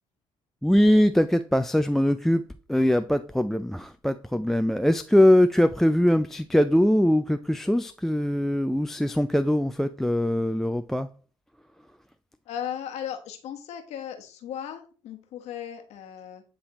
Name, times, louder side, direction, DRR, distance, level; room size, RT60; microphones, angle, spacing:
voice 1, 0.6-2.4 2.7-11.1, left 1 dB, 5° left, 0.3 m, -22 dB
voice 2, 12.5-16.4, left 9 dB, 70° left, 1.2 m, -36 dB
9.6 x 3.4 x 2.9 m
supercardioid pair, 70°, 12 cm